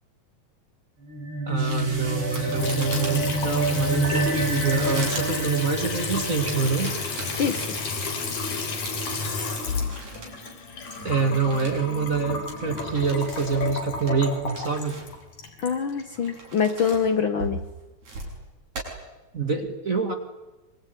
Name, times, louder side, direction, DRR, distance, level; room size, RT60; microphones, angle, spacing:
sound 1, 1.0-7.7, right 2 dB, 50° right, 7.0 m, -29 dB
voice 1, 1.5-6.9 11.0-15.0 19.3-20.1, right 5 dB, 30° right, 7 dB, 1.8 m, -26 dB
sound 2, 1.6-10.5 10.8-11.8 12.1-12.2 12.5-13.6 14.0-15.2 15.6-17.1 17.4-18.3 18.8-18.9, right 2 dB, 70° right, 7.4 m, -39 dB
Water tap faucet / Sink (filling or washing) / Trickle dribble, 2.3-16.4, left 4 dB, 80° left, 4.9 m, -32 dB
voice 2, 7.4-7.7 15.6-17.6, left 6 dB, 55° left, 9 dB, 1.6 m, -24 dB
25.0 x 24.0 x 9.2 m, 1.1 s
omnidirectional pair, 3.3 m